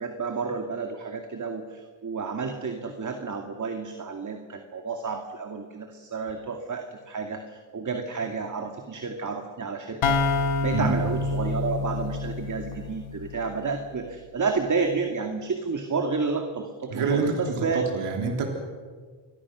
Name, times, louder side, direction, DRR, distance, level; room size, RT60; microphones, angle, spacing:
voice 1, 0.0-10.2 10.6-17.9, right 4 dB, 35° right, 4 dB, 2.4 m, -30 dB
sound 1, 10.0-13.7, left 3 dB, 80° left, 1.9 m, -27 dB
voice 2, 16.9-17.3 17.7-18.5, right 4 dB, 85° right, 2 dB, 3.9 m, -26 dB
28.5 x 23.0 x 6.3 m, 1.5 s
cardioid pair, 115°, 49 cm